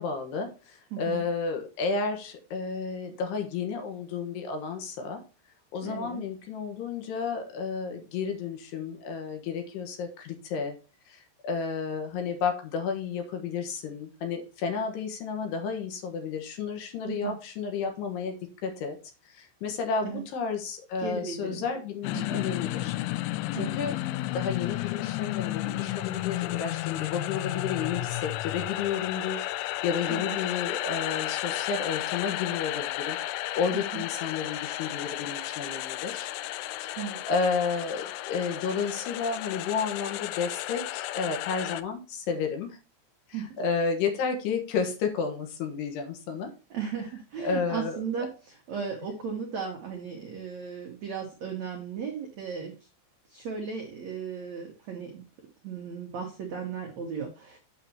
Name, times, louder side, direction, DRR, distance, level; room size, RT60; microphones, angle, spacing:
voice 1, 0.0-5.2 5.7-10.8 11.1-18.4 18.6-19.0 19.3-23.0 23.5-24.0 24.3-36.3 36.8-37.0 37.3-42.8 43.3-46.5 47.4-48.3, left 5 dB, 70° left, 4 dB, 3.1 m, -32 dB
voice 2, 0.9-1.2 5.8-6.2 17.1-17.3 20.0-20.2 21.0-21.7 22.1-22.4 23.5-23.7 30.1-30.4 33.9-34.0 37.0-37.2 43.3-43.5 46.7-52.7 53.3-55.2 55.6-57.6, right 6 dB, 85° right, 1 dB, 1.5 m, -36 dB
sound 1, 22.0-41.8, left 16 dB, 90° left, 3.0 m, -33 dB
9.2 x 6.8 x 2.9 m, 0.33 s
omnidirectional pair, 5.4 m